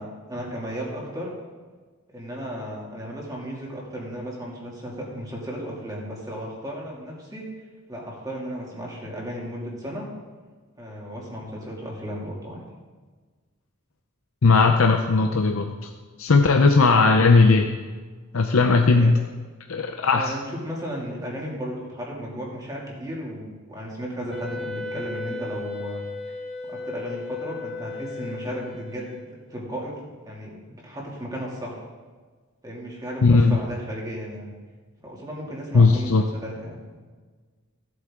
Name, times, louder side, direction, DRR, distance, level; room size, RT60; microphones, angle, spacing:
voice 1, 0.0-1.3 2.1-7.5 7.9-10.1 10.8-12.6 18.9-19.1 20.1-26.1 26.6-29.9 30.3-31.8 32.6-34.5 35.0-36.8, equal, 15° right, -4 dB, 2.6 m, -34 dB
voice 2, 14.4-15.7 16.2-17.8 18.3-19.2 19.7-20.3 33.2-33.6 35.7-36.2, left 3 dB, 70° left, 4 dB, 0.6 m, -17 dB
Wind instrument woodwind instrument, 24.3-29.5, left 3 dB, ahead, 2.8 m, -35 dB
15.5 x 8.1 x 3.7 m, 1.4 s
head